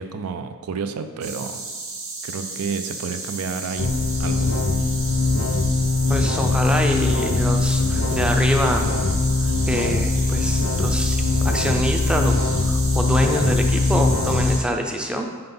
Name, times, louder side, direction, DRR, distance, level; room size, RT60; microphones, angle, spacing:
voice 1, 0.0-1.6 2.2-3.9 4.2-4.5, right 5 dB, 85° right, 9 dB, 0.4 m, -30 dB
sound 1, 1.2-14.6, right 3 dB, 65° right, 1.1 m, -33 dB
sound 2, 3.8-14.6, left 3 dB, 70° left, 0.4 m, -21 dB
voice 2, 6.1-8.8 9.7-12.3 12.6-15.3, equal, 5° right, 3 dB, 0.4 m, -25 dB
5.6 x 3.9 x 5.2 m, 1.5 s
head